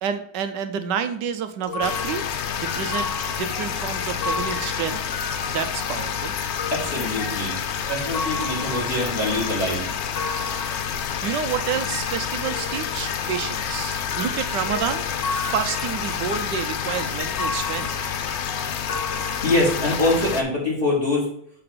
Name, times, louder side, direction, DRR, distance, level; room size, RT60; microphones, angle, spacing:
voice 1, 0.0-2.2 2.6-3.1 3.4-5.0 5.5-6.3 11.2-17.9, right 8 dB, 75° right, 9 dB, 1.3 m, -29 dB
sound 1, 1.6-12.1 12.4-19.8, left 3 dB, 45° left, 1.4 m, -35 dB
sound 2, 1.8-20.4, left 8 dB, 75° left, 0.6 m, -28 dB
voice 2, 6.7-7.6 7.9-10.0 19.4-21.3, left 1 dB, 30° left, -4 dB, 2.7 m, -24 dB
7.6 x 3.8 x 6.6 m, 0.65 s
omnidirectional pair, 1.9 m